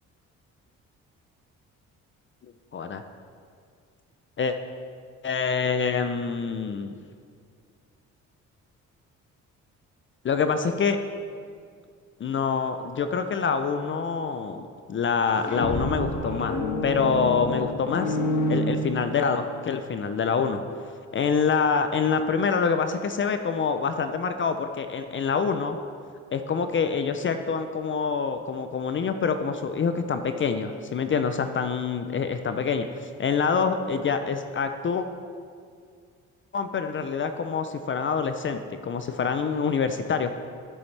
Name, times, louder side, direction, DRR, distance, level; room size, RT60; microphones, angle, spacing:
voice 1, 2.7-3.0 4.4-4.6 5.2-7.0 10.2-11.0 12.2-18.2 18.5-20.6 21.1-25.8 26.3-35.1 36.5-40.3, left 5 dB, 40° left, 8 dB, 0.5 m, -26 dB
sound 1, 15.2-19.5, left 1 dB, 70° left, 1.4 m, -28 dB
13.5 x 7.0 x 3.3 m, 2.2 s
cardioid pair, 90°, 30 cm